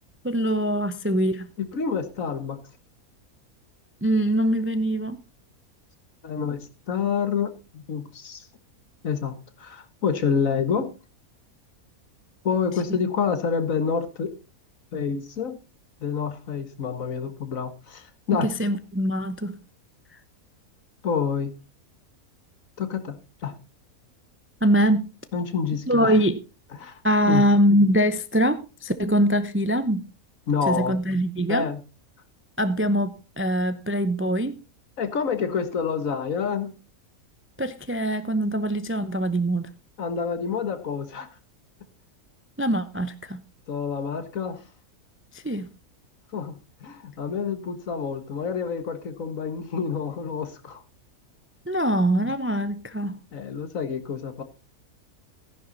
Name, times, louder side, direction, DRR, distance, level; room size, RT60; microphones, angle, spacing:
voice 1, 0.2-1.5 4.0-5.2 18.4-19.6 24.6-25.1 25.9-26.4 27.0-30.1 30.7-31.7 32.6-34.6 37.6-39.7 42.6-43.4 45.3-45.7 51.7-53.2, equal, 15° right, 0.5 m, -23 dB
voice 2, 1.6-2.6 6.2-8.5 9.0-10.9 12.4-14.3 14.9-15.6 16.0-18.5 21.0-21.5 22.8-23.5 25.3-26.2 26.8-27.0 27.3-27.5 30.5-31.0 31.5-31.8 35.0-36.7 40.0-41.3 43.7-44.6 46.3-50.8 52.2-52.3 53.3-54.4, left 6 dB, 65° left, 1.8 m, -28 dB
14.5 x 10.5 x 4.0 m
omnidirectional pair, 1.5 m